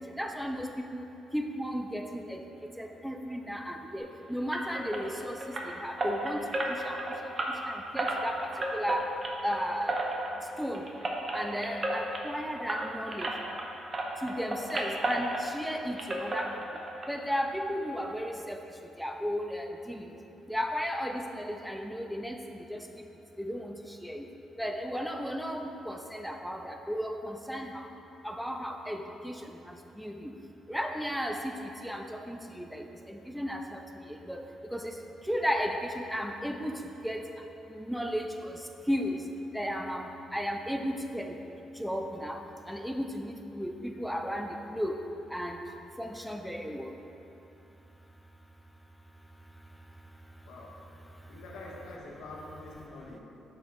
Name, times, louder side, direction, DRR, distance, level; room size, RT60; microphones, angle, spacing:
voice 1, 0.2-1.0 1.3-2.4 2.8-5.4 5.8-6.4 6.8-7.0 7.7-9.1 9.4-10.0 10.6-10.8 11.3-13.3 14.2-16.5 17.1-18.6 19.0-20.0 20.5-22.8 23.4-23.7 24.0-24.2 24.6-27.9 28.2-29.4 30.0-30.1 30.7-33.8 34.3-34.4 34.7-34.9 35.3-37.2 37.7-38.5 38.9-39.2 39.5-41.4 41.8-42.4 42.7-45.0 45.3-45.6 46.0-46.9, equal, ahead, 4 dB, 0.3 m, -34 dB
sound 1, 4.5-13.7 13.9-15.7 16.0-17.1 17.3-17.5 17.9-18.0 18.3-18.4, right 1 dB, 35° right, 0.8 m, -33 dB
voice 2, 50.4-50.9 51.3-53.2, left 2 dB, 80° left, -3 dB, 1.1 m, -45 dB
7.0 x 4.3 x 3.8 m, 3.0 s
cardioid pair, 90°, 0 cm